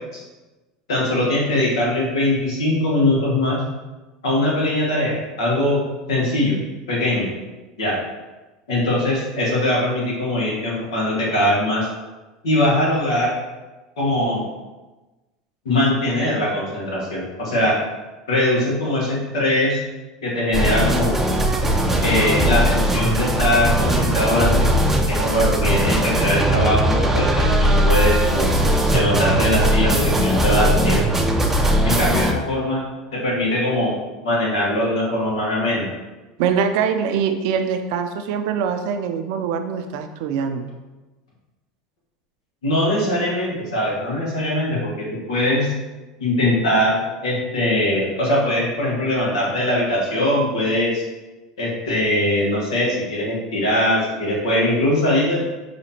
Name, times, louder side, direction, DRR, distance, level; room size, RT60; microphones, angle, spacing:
voice 1, 0.9-3.6 4.2-5.8 6.1-6.6 6.9-7.3 7.8-8.0 8.7-11.9 12.4-13.3 14.0-14.4 15.6-17.8 18.3-19.8 20.2-21.1 22.0-24.6 25.1-28.5 28.9-31.2 31.8-32.8 33.1-35.9 42.6-45.7 46.2-51.0 51.6-55.5, left 1 dB, 85° left, -4 dB, 1.3 m, -21 dB
sound 1, 20.5-32.3, right 1 dB, 10° right, 0.5 m, -19 dB
voice 2, 36.4-40.7, right 7 dB, 65° right, 8 dB, 0.4 m, -23 dB
5.1 x 2.8 x 2.8 m, 1.2 s
hypercardioid pair, 95°, 3 cm